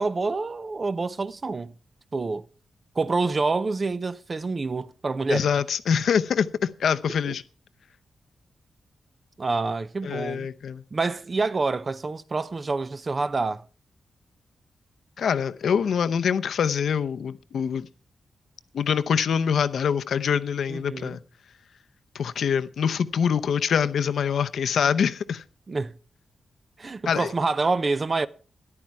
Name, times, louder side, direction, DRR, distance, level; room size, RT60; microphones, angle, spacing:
voice 1, 0.0-1.7 2.1-2.5 3.0-5.5 7.3-7.4 9.4-10.5 10.9-13.6 20.7-21.2 25.7-25.9 26.8-28.3, right 3 dB, 30° right, 0.5 m, -27 dB
voice 2, 5.3-7.4 10.0-10.8 15.2-17.9 18.7-21.2 22.1-25.4 27.1-27.3, left 7 dB, 75° left, 0.7 m, -24 dB
13.0 x 11.5 x 4.7 m
wide cardioid pair, 155°, 0 cm